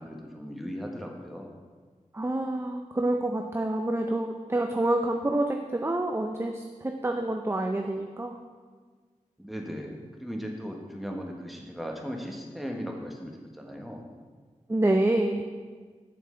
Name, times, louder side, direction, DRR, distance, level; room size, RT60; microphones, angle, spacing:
voice 1, 0.0-1.5 9.4-14.0, equal, ahead, 1 dB, 1.2 m, -37 dB
voice 2, 2.1-8.4 14.7-15.4, right 1 dB, 20° right, 3 dB, 0.5 m, -27 dB
7.8 x 6.8 x 3.8 m, 1.5 s
wide cardioid pair, 45°, 14 cm